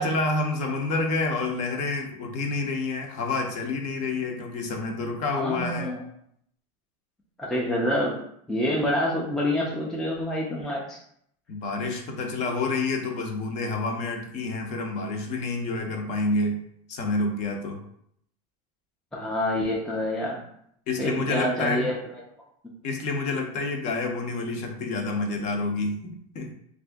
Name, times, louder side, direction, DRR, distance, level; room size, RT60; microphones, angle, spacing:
voice 1, 0.0-5.9 11.5-16.6 16.9-17.8 20.9-21.9 22.8-26.6, left 3 dB, 40° left, 3 dB, 0.6 m, -28 dB
voice 2, 5.3-6.0 7.4-8.2 8.5-11.0 19.1-20.4 21.0-22.0, left 1 dB, 5° left, -3 dB, 0.4 m, -27 dB
2.7 x 2.5 x 3.4 m, 0.69 s
supercardioid pair, 145°, 18 cm